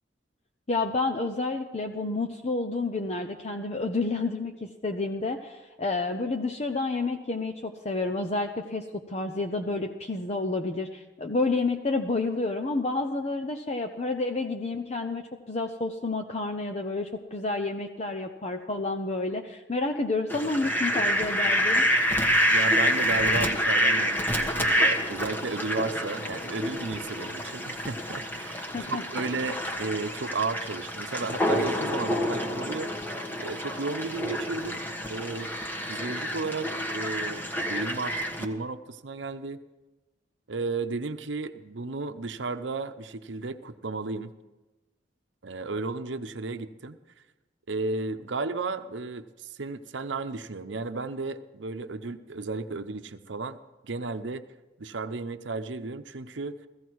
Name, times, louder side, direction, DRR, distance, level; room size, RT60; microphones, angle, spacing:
voice 1, 0.7-21.8 28.7-29.0, left 3 dB, 35° left, 5 dB, 0.8 m, -30 dB
Fowl, 20.3-38.4, equal, 10° left, 1.3 m, -28 dB
voice 2, 22.5-32.9 33.4-35.5 35.8-39.6 40.5-44.3 45.4-47.0 47.7-53.6 53.8-54.4 54.8-56.6, right 3 dB, 75° right, 9 dB, 0.8 m, -34 dB
16.5 x 15.5 x 4.7 m, 1.1 s
head